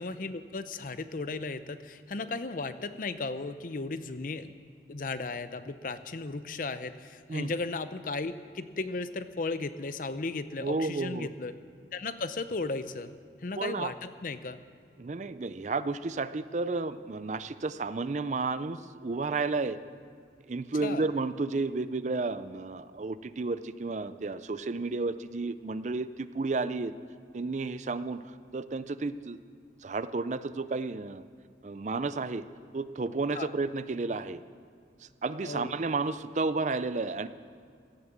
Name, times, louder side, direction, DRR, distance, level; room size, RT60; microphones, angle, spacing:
voice 1, 0.0-4.5 4.9-11.6 11.9-13.2 13.4-14.6 20.8-21.1 33.3-33.5 35.4-35.7, left 3 dB, 50° left, 12 dB, 0.6 m, -35 dB
voice 2, 10.6-11.3 13.6-13.9 15.0-19.8 20.5-26.9 27.3-28.2 28.5-29.4 29.8-31.2 31.6-32.4 32.7-34.4 35.0-37.3, right 3 dB, 40° right, 14 dB, 0.4 m, -32 dB
16.5 x 10.5 x 7.3 m, 2.2 s
head